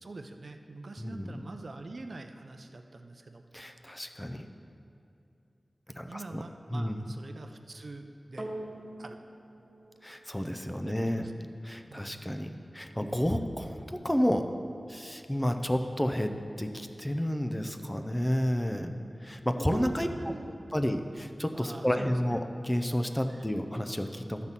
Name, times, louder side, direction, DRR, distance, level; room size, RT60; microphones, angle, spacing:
voice 1, 0.0-3.4 6.1-8.5 9.0-9.2 10.8-11.3 11.9-12.3 19.5-20.8 21.5-22.4 23.3-23.6, right 2 dB, 65° right, 6 dB, 0.5 m, -44 dB
voice 2, 1.0-1.4 3.5-4.4 6.0-6.4 6.7-7.1 10.0-11.3 11.6-14.5 14.9-18.9 19.2-20.1 20.7-24.5, equal, 10° left, 6 dB, 0.5 m, -31 dB
sound 1, 8.4-16.9 17.7-17.8, right 1 dB, 10° right, 1.4 m, -48 dB
12.0 x 4.1 x 7.3 m, 2.7 s
wide cardioid pair, 85°, 0 cm